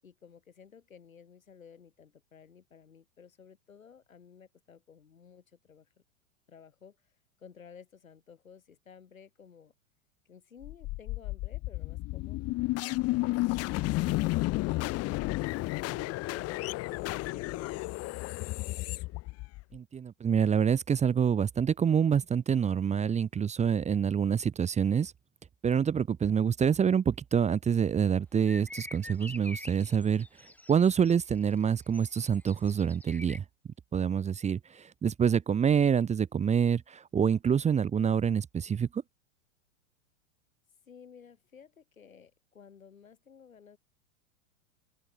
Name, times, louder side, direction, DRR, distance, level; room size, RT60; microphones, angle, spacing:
voice 1, 0.0-5.9 6.5-7.1 7.4-9.7 10.3-15.3 15.9-18.8 40.9-43.8, left 7 dB, 85° left, 7.5 m, -54 dB
sound 1, 10.6-19.8, left 20 dB, 35° left, 1.3 m, -32 dB
voice 2, 19.7-25.1 25.6-30.3 30.7-33.4 33.9-39.0, right 7 dB, 15° right, 1.0 m, -26 dB
sound 2, 28.5-33.4, left 1 dB, 5° left, 2.8 m, -47 dB
hypercardioid pair, 100°, 40 cm